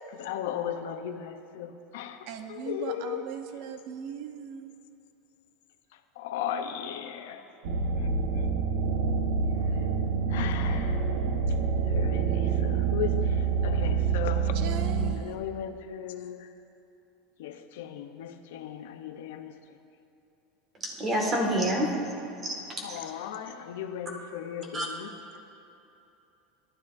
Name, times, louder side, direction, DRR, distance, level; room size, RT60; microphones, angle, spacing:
voice 1, 0.2-3.3 6.2-8.7 9.7-9.8 10.3-11.1 11.8-14.5 15.1-16.5 17.4-19.6 22.8-25.2, left 10 dB, 85° left, 8 dB, 0.7 m, -37 dB
voice 2, 2.3-4.7 14.5-15.4, right 8 dB, 60° right, 7 dB, 0.7 m, -39 dB
sound 1, 7.6-15.1, right 5 dB, 80° right, 1.1 m, -27 dB
voice 3, 20.8-21.9 22.4-23.0 24.7-24.9, right 1 dB, 25° right, -1 dB, 1.9 m, -28 dB
18.5 x 12.5 x 2.6 m, 2.8 s
supercardioid pair, 155°, 0 cm